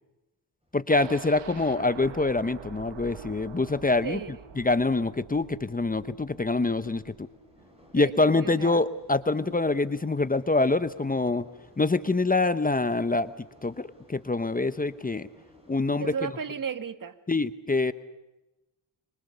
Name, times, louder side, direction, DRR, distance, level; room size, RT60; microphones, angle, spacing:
sound 1, 0.6-16.3, left 1 dB, 15° right, 7.7 m, -59 dB
voice 1, 0.7-4.2 4.6-7.3 7.9-11.5 11.8-13.3 13.6-15.3 15.7-16.1 17.3-17.9, left 3 dB, 20° left, 13 dB, 0.9 m, -25 dB
sound 2, 0.9-8.8 9.1-9.2 9.6-9.7, right 8 dB, 80° right, 1.5 m, -46 dB
voice 2, 4.0-4.4 7.9-8.8 16.0-17.2, right 7 dB, 50° right, 11 dB, 1.5 m, -34 dB
25.5 x 23.5 x 6.9 m, 1.0 s
cardioid pair, 75°, 42 cm